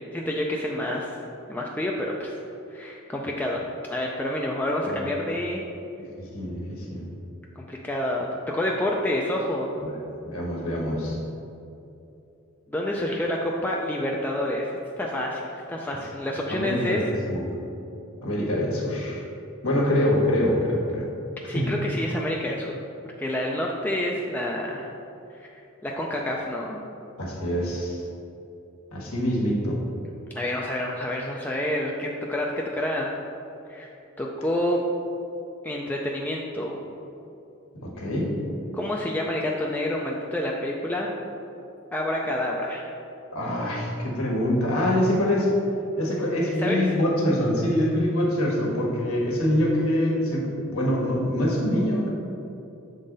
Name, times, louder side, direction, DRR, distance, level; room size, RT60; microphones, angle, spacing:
voice 1, 0.1-1.1 1.5-2.4 2.7-5.6 7.6-9.7 12.7-14.7 15.0-15.4 15.7-17.2 21.5-22.8 23.2-24.9 25.4-26.8 30.3-32.5 32.7-33.1 33.7-33.9 34.2-34.8 35.6-36.8 38.7-41.1 41.9-42.9 46.6-46.8, left 1 dB, 10° left, -2 dB, 0.3 m, -28 dB
voice 2, 6.0-7.1 9.8-10.0 10.2-11.2 16.5-17.4 18.2-19.2 19.6-21.1 21.5-21.7 27.2-28.0 28.9-29.8 37.8-38.3 43.3-45.5 46.0-52.1, left 1 dB, 85° left, -3 dB, 1.4 m, -25 dB
7.3 x 3.9 x 3.9 m, 2.8 s
head